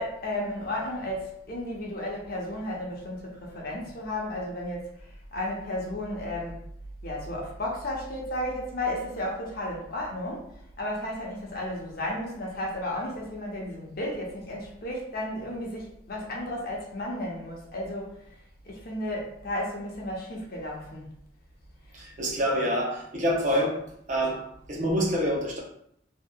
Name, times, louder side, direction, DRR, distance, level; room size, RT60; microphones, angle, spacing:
voice 1, 0.0-4.9 5.3-6.6 7.0-18.2 18.7-21.1, left 1 dB, 55° left, -2 dB, 0.8 m, -33 dB
voice 2, 21.9-23.8 24.1-25.6, equal, 40° right, -2 dB, 0.7 m, -27 dB
2.9 x 2.7 x 2.3 m, 0.70 s
head